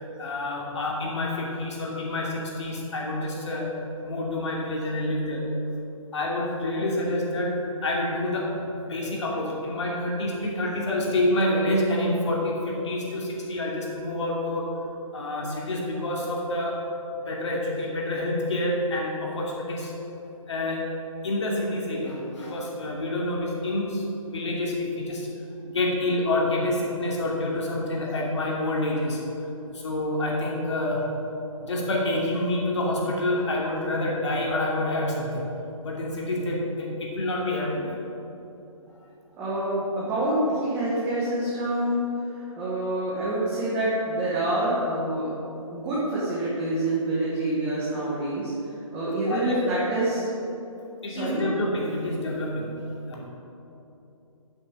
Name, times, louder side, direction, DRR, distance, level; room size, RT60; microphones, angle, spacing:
voice 1, 0.2-3.8 4.0-5.5 6.1-14.7 15.1-16.8 17.1-19.9 20.5-20.9 21.2-25.3 25.6-29.2 29.7-31.1 31.6-35.4 35.8-38.0 49.3-49.5 51.0-53.3, left 1 dB, 55° left, -3 dB, 2.7 m, -28 dB
voice 2, 39.4-42.0 42.3-45.3 45.7-48.5 48.9-50.3 51.1-51.4, right 1 dB, 10° right, -9 dB, 1.3 m, -27 dB
8.6 x 7.7 x 6.6 m, 2.9 s
hypercardioid pair, 165°, 18 cm